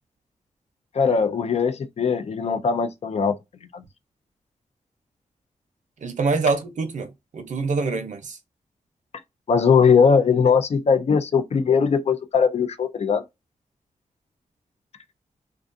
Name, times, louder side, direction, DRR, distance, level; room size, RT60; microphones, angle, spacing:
voice 1, 0.9-3.4 3.7-3.8 9.5-13.2, left 6 dB, 55° left, 0.4 m, -20 dB
voice 2, 6.0-8.4, right 4 dB, 70° right, 0.6 m, -25 dB
2.4 x 2.3 x 2.5 m
wide cardioid pair, 80°, 13 cm